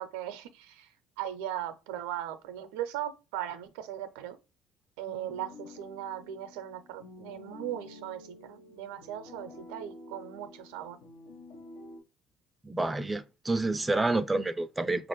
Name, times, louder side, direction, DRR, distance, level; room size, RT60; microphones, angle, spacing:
voice 1, 0.0-4.4 5.0-11.0, right 11 dB, 85° right, 0.5 m, -38 dB
sound 1, 5.1-12.0, left 2 dB, 80° left, 1.0 m, -49 dB
voice 2, 12.6-15.1, right 2 dB, 15° right, 0.4 m, -29 dB
5.1 x 2.5 x 3.0 m
supercardioid pair, 80°, 0 cm